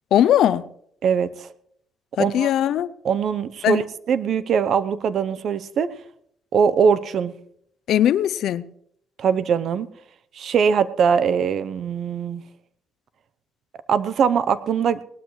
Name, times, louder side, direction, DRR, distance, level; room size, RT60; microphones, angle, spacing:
voice 1, 0.1-0.7 2.2-2.9 3.6-3.8 7.9-8.7, left 11 dB, 75° left, 0.5 m, -19 dB
voice 2, 1.0-1.5 2.2-2.5 3.0-5.9 6.5-7.3 9.2-9.9 10.4-12.4 13.9-15.0, right 7 dB, 65° right, 0.7 m, -21 dB
19.0 x 12.0 x 3.2 m
cardioid pair, 90°, 0 cm